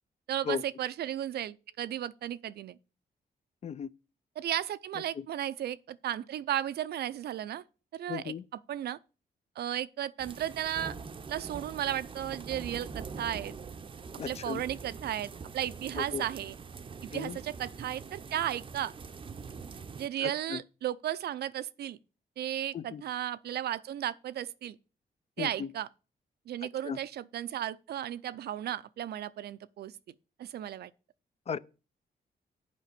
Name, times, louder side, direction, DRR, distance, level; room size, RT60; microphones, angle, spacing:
voice 1, 0.3-2.8 4.4-7.6 7.9-8.3 8.7-9.0 9.6-11.0 11.3-13.5 14.3-16.6 17.0-18.9 20.0-22.0 22.4-24.8 25.4-25.9 26.5-29.9 30.4-30.9, right 11 dB, 90° right, 0.5 m, -34 dB
voice 2, 8.1-8.4 14.2-14.7 16.0-16.2 17.1-17.4 20.2-20.6 22.7-23.0 25.4-25.7 26.8-27.0 31.5-31.6, left 7 dB, 40° left, 0.4 m, -36 dB
sound 1, 10.2-20.1, right 5 dB, 30° right, 0.6 m, -44 dB
8.3 x 5.1 x 6.7 m
wide cardioid pair, 145°, 16 cm